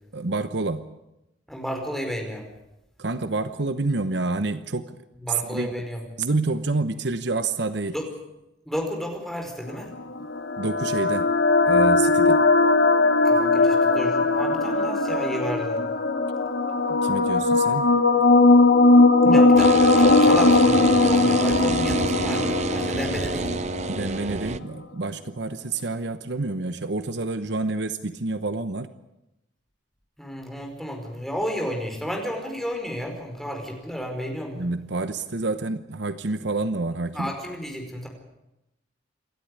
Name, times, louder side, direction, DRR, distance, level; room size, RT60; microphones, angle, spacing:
voice 1, 0.1-0.9 3.0-5.0 5.5-5.7 6.2-7.9 10.6-11.3 11.7-12.4 16.9-17.9 19.2-19.4 23.9-28.9 34.5-37.3, right 3 dB, 65° right, 11 dB, 1.0 m, -28 dB
voice 2, 1.5-2.5 5.2-6.1 7.9-8.0 8.6-9.9 13.2-15.8 19.3-23.6 30.2-34.6 37.1-38.1, equal, ahead, 2 dB, 5.0 m, -32 dB
sound 1, 9.9-24.1, left 3 dB, 65° left, 1.7 m, -19 dB
sound 2, 19.6-24.6, right 3 dB, 40° right, 0.8 m, -28 dB
28.5 x 12.5 x 9.8 m, 0.91 s
head